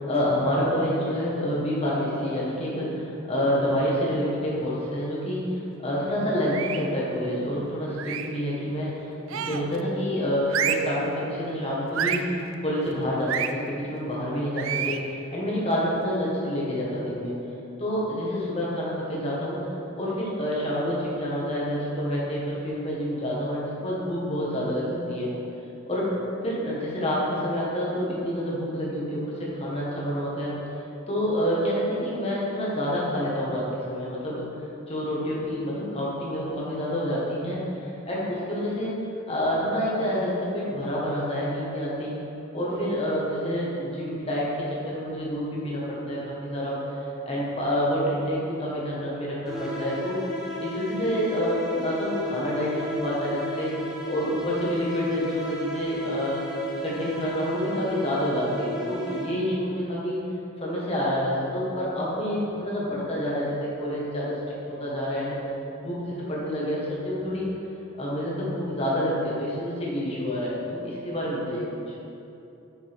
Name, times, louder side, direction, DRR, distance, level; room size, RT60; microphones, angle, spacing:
voice 1, 0.1-9.0 9.3-12.3 12.6-17.3 17.8-19.6 19.9-25.3 25.9-26.1 26.4-30.5 31.1-34.5 34.9-38.9 39.3-42.1 42.5-46.8 47.2-50.2 50.6-53.7 54.1-56.4 56.8-60.2 60.6-64.3 64.8-65.4 65.8-67.5 68.0-71.7, equal, 30° left, -6 dB, 1.6 m, -28 dB
sound 1, 6.5-6.9 8.0-8.4 9.3-9.8 10.5-11.0 11.9-12.3 13.3-13.5 14.6-15.1, right 9 dB, 65° right, 0.4 m, -29 dB
sound 2, 49.4-59.7, equal, 5° right, 0.8 m, -34 dB
7.5 x 6.4 x 3.6 m, 2.9 s
head